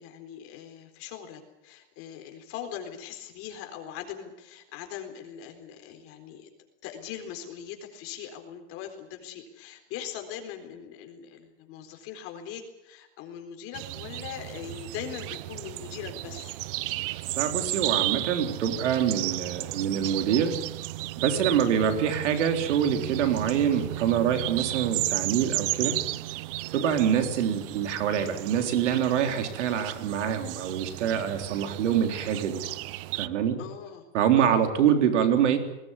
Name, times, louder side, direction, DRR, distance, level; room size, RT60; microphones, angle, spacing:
voice 1, 0.0-6.5 6.8-16.5 33.6-34.0 34.4-34.6, left 9 dB, 40° left, 5 dB, 4.2 m, -41 dB
sound 1, 13.7-33.3, right 18 dB, 50° right, 0.8 m, -34 dB
voice 2, 17.4-20.5 21.2-26.0 26.7-32.6 33.2-33.6 34.1-35.6, right 8 dB, 90° right, 6 dB, 3.7 m, -25 dB
20.5 x 18.5 x 9.7 m, 0.94 s
supercardioid pair, 160°, 34 cm